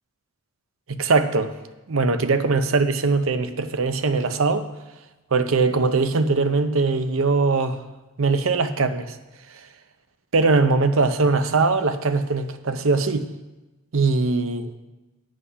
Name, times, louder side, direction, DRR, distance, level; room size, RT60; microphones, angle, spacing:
voice 1, 0.9-1.5 1.9-4.7 5.3-7.8 8.2-9.2 10.3-13.3 13.9-14.7, right 3 dB, 70° right, 10 dB, 0.7 m, -21 dB
9.7 x 7.7 x 5.7 m, 1.1 s
head